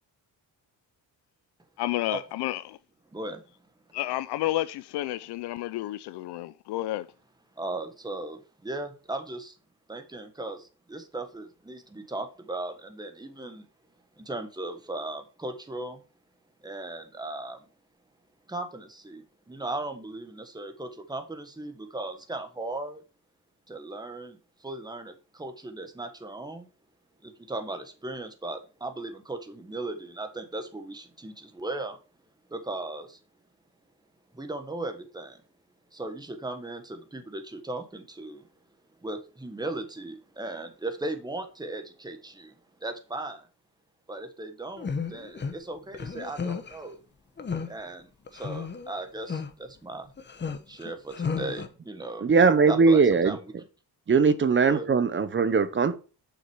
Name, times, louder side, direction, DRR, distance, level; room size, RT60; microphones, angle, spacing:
voice 1, 1.8-2.8 3.9-7.1, left 15 dB, 85° left, 0.5 m, -31 dB
voice 2, 7.6-9.6 9.9-13.7 14.2-16.0 16.6-17.6 18.5-23.0 23.7-26.7 27.2-32.0 32.5-33.2 34.3-35.4 35.9-38.5 39.0-42.5 42.8-43.5 44.1-47.0 47.7-50.1 50.7-52.2 52.7-53.4 54.7-54.8, right 2 dB, 10° right, 1.6 m, -37 dB
sound 1, 44.8-45.5 45.9-46.8 47.4-47.7 48.3-48.9 49.3-49.5 50.2-51.7, left 5 dB, 25° left, 1.1 m, -33 dB
voice 3, 52.2-53.4 54.1-56.0, right 5 dB, 30° right, 0.8 m, -20 dB
7.2 x 6.0 x 4.7 m
cardioid pair, 120°, 39 cm